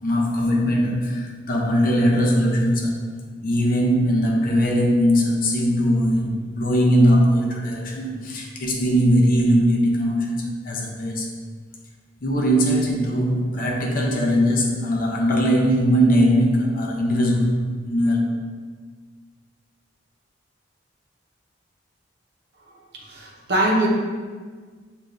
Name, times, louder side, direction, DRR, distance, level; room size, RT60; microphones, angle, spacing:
voice 1, 0.0-3.0 3.4-11.3 12.2-17.6 17.9-18.3, equal, 50° left, 0 dB, 0.6 m, -20 dB
voice 2, 23.0-23.9, right 1 dB, 65° right, -4 dB, 0.8 m, -22 dB
6.8 x 2.4 x 2.5 m, 1.5 s
head